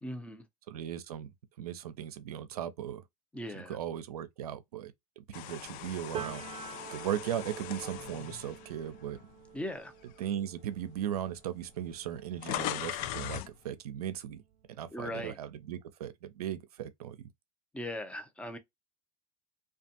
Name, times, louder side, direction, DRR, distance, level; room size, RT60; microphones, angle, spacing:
voice 1, 0.0-0.4 3.3-3.8 9.5-9.9 14.9-15.4 17.7-18.6, left 1 dB, 5° left, 0.6 m, -39 dB
voice 2, 0.7-1.3 1.6-3.0 3.5-6.4 6.9-9.2 10.2-14.4 14.7-17.2, right 10 dB, 85° right, 0.5 m, -37 dB
sound 1, 5.3-9.6 10.1-10.3 11.2-11.3 11.5-13.6, left 13 dB, 50° left, 0.4 m, -40 dB
Piano, 6.1-13.8 14.1-15.7, right 9 dB, 35° right, 0.7 m, -47 dB
2.4 x 2.3 x 2.7 m
hypercardioid pair, 90°, 19 cm